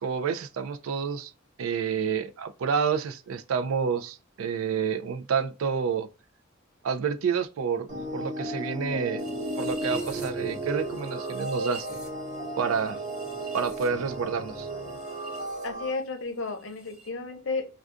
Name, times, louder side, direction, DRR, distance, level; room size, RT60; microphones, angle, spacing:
voice 1, 0.0-1.3 1.6-6.1 6.8-9.3 9.6-11.9 12.6-13.0 13.5-14.7, right 6 dB, 85° right, 0.4 m, -29 dB
sound 1, 7.9-15.9, right 1 dB, 40° right, 1.0 m, -34 dB
sound 2, 9.2-15.7 15.9-17.1, right 3 dB, 5° right, 0.9 m, -47 dB
voice 2, 15.6-17.7, left 3 dB, 65° left, 0.7 m, -32 dB
2.4 x 2.3 x 3.6 m
head